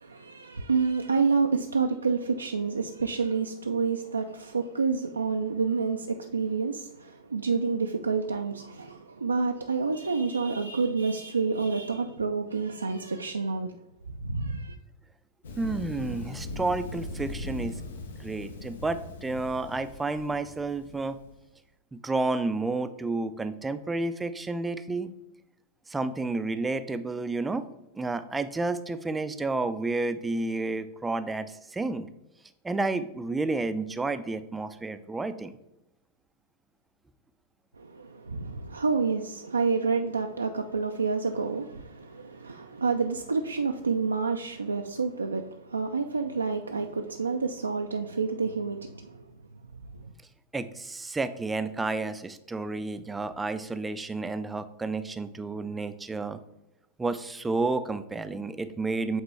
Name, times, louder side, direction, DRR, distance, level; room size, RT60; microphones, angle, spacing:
voice 1, 0.0-13.7 14.2-14.8 37.8-49.1, right 4 dB, 75° right, 0.3 m, -28 dB
Thunder, 15.4-21.3, left 2 dB, 65° left, 0.7 m, -39 dB
voice 2, 15.6-17.8 18.2-21.2 21.9-25.1 25.9-27.6 27.9-32.1 32.6-35.6 50.5-56.4 57.0-59.2, right 3 dB, 10° right, 0.4 m, -31 dB
8.1 x 3.6 x 3.2 m
figure-of-eight pair, 90°, 0 cm